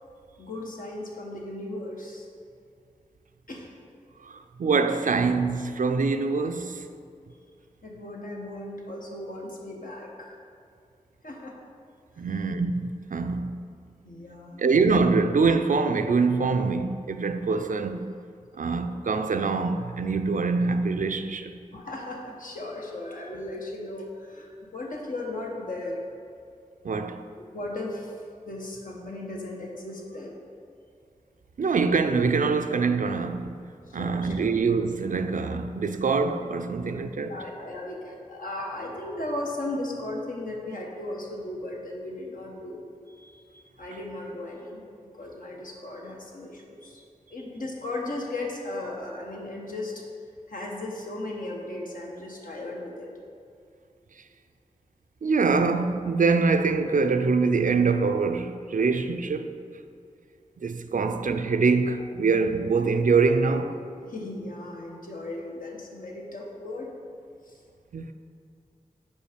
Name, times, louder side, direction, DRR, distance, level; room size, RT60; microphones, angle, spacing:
voice 1, 0.4-2.3 3.5-3.7 7.8-10.4 11.2-11.6 12.2-12.3 14.0-14.7 16.5-16.6 21.7-26.0 27.3-28.2 28.4-30.4 33.9-34.3 37.2-42.8 43.1-47.0 47.3-50.0 50.5-53.1 61.0-61.1 64.0-66.9 67.5-67.6, left 2 dB, 70° left, 1.0 m, -36 dB
voice 2, 4.2-6.8 12.2-13.6 14.6-18.1 18.6-21.5 26.8-27.2 31.6-33.6 33.9-37.3 55.2-59.5 60.6-63.8 67.9-68.1, right 4 dB, 65° right, 0.4 m, -24 dB
5.3 x 4.7 x 5.0 m
cardioid pair, 40°, 15 cm